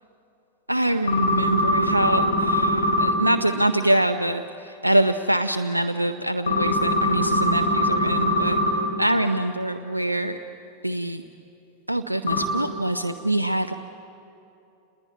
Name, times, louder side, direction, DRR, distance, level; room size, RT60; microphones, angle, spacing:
voice 1, 0.7-8.6 9.0-10.4 10.8-11.2 11.9-13.7, right 1 dB, 85° right, 9 dB, 0.7 m, -24 dB
sound 1, 1.1-3.1 6.5-8.7 12.3-12.4, left 1 dB, 70° left, 5.0 m, -22 dB
29.0 x 20.5 x 9.6 m, 2.8 s
figure-of-eight pair, 90°, 0 cm